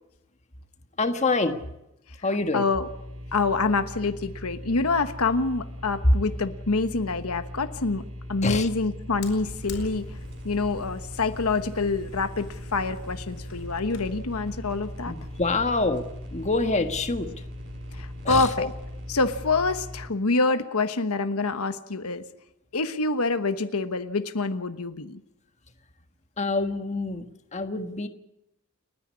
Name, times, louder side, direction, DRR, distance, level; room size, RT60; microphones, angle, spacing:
voice 1, 1.0-1.6 2.2-2.6 8.4-8.7 15.1-16.0 16.3-17.3 18.2-18.7 26.4-27.2 27.5-28.1, left 3 dB, 30° left, 7 dB, 1.5 m, -26 dB
voice 2, 2.2-2.9 3.3-8.0 8.3-10.1 10.4-15.1 17.9-18.7 19.1-22.2 22.7-25.2, left 3 dB, 85° left, 10 dB, 1.2 m, -26 dB
sound 1, 2.8-20.1, equal, 80° right, 5.7 m, -39 dB
sound 2, 9.1-19.4, equal, 50° right, 6.8 m, -48 dB
Fire, 9.2-14.2, left 3 dB, 70° left, 4.6 m, -47 dB
30.0 x 10.0 x 9.7 m, 0.87 s
head